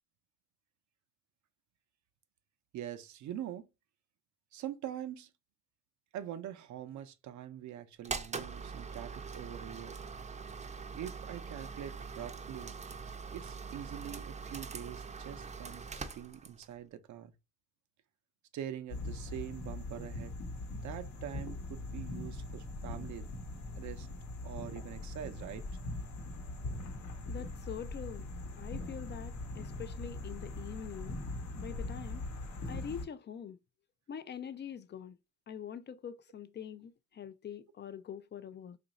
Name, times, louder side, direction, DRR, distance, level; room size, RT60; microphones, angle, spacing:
voice 1, 2.7-3.7 4.5-5.3 6.1-9.9 10.9-12.8 13.3-17.3 18.5-20.3 20.7-23.3 23.8-24.1 24.4-25.6, right 11 dB, 70° right, 0.6 m, -44 dB
sound 1, 8.0-16.8, right 5 dB, 25° right, 0.5 m, -43 dB
sound 2, 18.9-33.1, left 2 dB, 65° left, 0.9 m, -41 dB
voice 2, 27.3-28.3 28.6-31.2 31.6-32.2 32.7-33.6 34.1-35.2 35.5-38.8, left 8 dB, 35° left, 0.4 m, -44 dB
3.0 x 2.5 x 4.0 m
cardioid pair, 80°, 30 cm